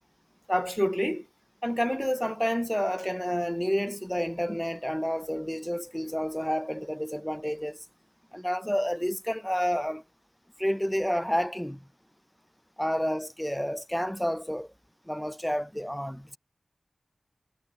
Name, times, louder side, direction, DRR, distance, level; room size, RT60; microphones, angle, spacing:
voice 1, 0.5-1.3 1.6-7.8 8.3-10.0 10.6-11.8 12.8-14.7 15.1-16.4, equal, 5° left, 0.5 m, -29 dB
wide cardioid pair, 60°, 0 cm